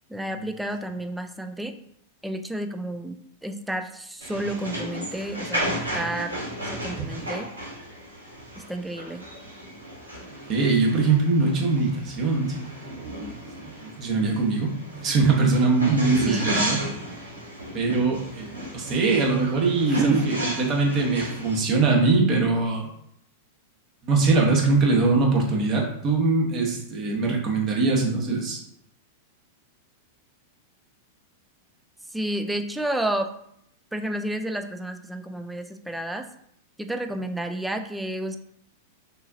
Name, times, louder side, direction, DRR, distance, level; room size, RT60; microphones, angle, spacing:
voice 1, 0.1-1.7 2.2-3.2 3.4-6.4 6.7-7.5 8.6-9.2 16.2-16.5 19.9-20.2 32.1-33.4 33.9-36.3 36.8-38.4, right 1 dB, 5° right, 7 dB, 0.4 m, -30 dB
sound 1, 4.2-21.6, right 1 dB, 85° right, 1.5 m, -34 dB
voice 2, 10.5-13.1 13.6-16.8 17.7-22.8 24.0-28.6, right 3 dB, 35° right, 0 dB, 1.3 m, -22 dB
6.2 x 2.7 x 2.7 m, 0.72 s
figure-of-eight pair, 95°, 0 cm